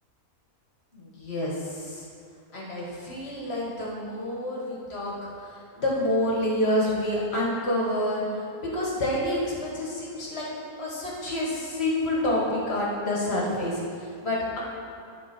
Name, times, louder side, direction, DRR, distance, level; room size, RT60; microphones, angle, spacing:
voice 1, 0.9-2.1 2.5-5.1 5.4-10.5 10.8-14.6, left 1 dB, 45° left, -4 dB, 1.9 m, -28 dB
9.7 x 4.2 x 6.1 m, 2.5 s
omnidirectional pair, 1.5 m